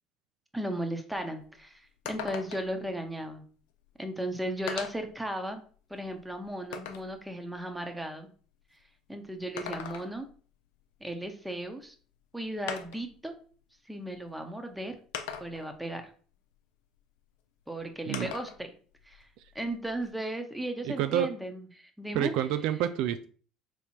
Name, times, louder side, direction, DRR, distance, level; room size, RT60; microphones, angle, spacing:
voice 1, 0.5-3.4 4.0-5.6 5.9-8.3 9.1-10.3 11.0-11.9 12.3-13.3 13.9-14.9 15.4-16.1 17.7-18.7 19.0-19.3 19.5-22.3, right 1 dB, 5° right, 5 dB, 1.0 m, -36 dB
sound 1, 1.1-1.2 1.5-1.6 2.1-2.8 3.9-4.0 4.7-5.1 5.7-7.1 9.4-10.3 11.8-11.9 12.7-13.1 14.1-14.2 15.1-15.8 18.1-18.6 19.0-20.1, left 8 dB, 80° left, 0.5 m, -40 dB
voice 2, 20.8-21.4 22.1-23.3, right 11 dB, 70° right, 10 dB, 0.3 m, -28 dB
3.5 x 3.0 x 4.3 m, 0.42 s
hypercardioid pair, 75°, 0 cm